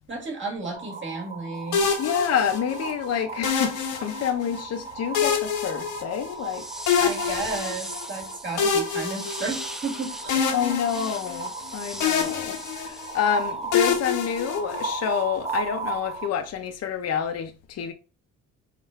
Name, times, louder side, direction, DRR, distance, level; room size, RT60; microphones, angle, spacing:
voice 1, 0.1-1.9 7.0-10.4, right 3 dB, 40° right, 1.7 m, -33 dB
sound 1, 0.7-16.3, right 4 dB, 20° right, 0.8 m, -37 dB
sound 2, 1.7-2.9 3.4-4.6 5.1-6.5 6.9-8.0 8.6-9.9 10.3-11.7 12.0-13.2 13.7-15.1, left 6 dB, 90° left, 1.0 m, -26 dB
voice 2, 2.0-6.7 10.5-17.9, left 8 dB, 55° left, 0.6 m, -28 dB
sound 3, 6.3-13.5, right 1 dB, ahead, 0.4 m, -39 dB
3.5 x 2.5 x 4.4 m
cardioid pair, 90°, 30 cm